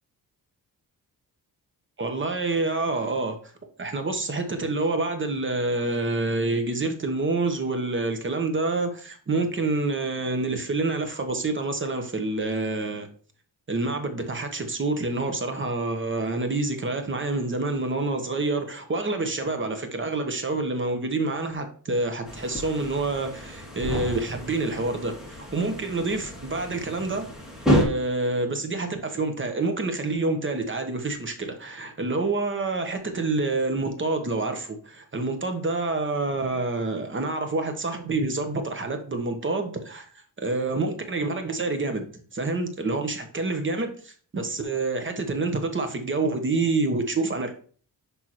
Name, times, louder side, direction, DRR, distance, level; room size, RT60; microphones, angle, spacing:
voice 1, 2.0-3.4 3.8-13.1 13.7-27.3 27.7-40.1 40.4-42.0 42.3-47.5, right 3 dB, 30° right, 1.1 m, -27 dB
sound 1, 22.3-27.8, equal, ahead, 2.3 m, -29 dB
10.5 x 3.6 x 3.0 m
cardioid pair, 110°, 38 cm